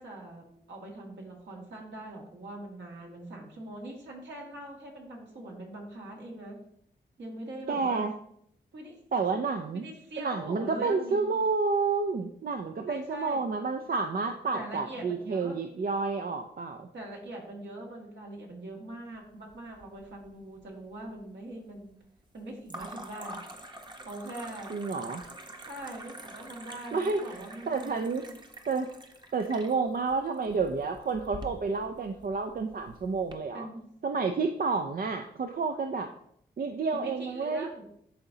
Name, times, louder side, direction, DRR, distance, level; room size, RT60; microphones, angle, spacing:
voice 1, 0.0-6.6 7.2-8.0 8.7-9.0 9.3-9.4 9.7-11.4 12.9-13.4 14.5-15.6 16.9-21.9 22.3-23.7 24.0-24.7 25.6-28.4 33.5-33.8 36.9-37.8, right 1 dB, 75° right, -2 dB, 2.1 m, -42 dB
voice 2, 7.7-8.1 9.1-9.8 10.2-16.9 24.7-25.2 26.9-27.3 27.7-28.2 28.7-28.9 29.3-33.7 34.0-36.1 36.6-37.7, right 4 dB, 55° right, 5 dB, 0.5 m, -30 dB
sound 1, 19.5-20.3 20.6-21.2 22.7-33.3, right 1 dB, 25° right, 1.0 m, -47 dB
11.0 x 3.9 x 2.8 m, 0.70 s
cardioid pair, 55°, 18 cm